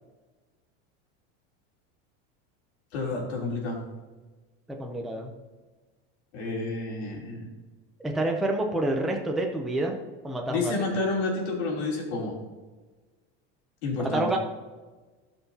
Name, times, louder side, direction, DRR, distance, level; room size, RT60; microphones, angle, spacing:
voice 1, 2.9-3.8 6.3-7.5 10.5-12.3 13.8-14.3, left 3 dB, 85° left, -2 dB, 3.2 m, -30 dB
voice 2, 4.7-5.3 8.0-10.0 10.2-10.7 13.9-14.4, right 2 dB, ahead, 0 dB, 0.5 m, -28 dB
16.5 x 5.8 x 2.8 m, 1.3 s
supercardioid pair, 165°, 32 cm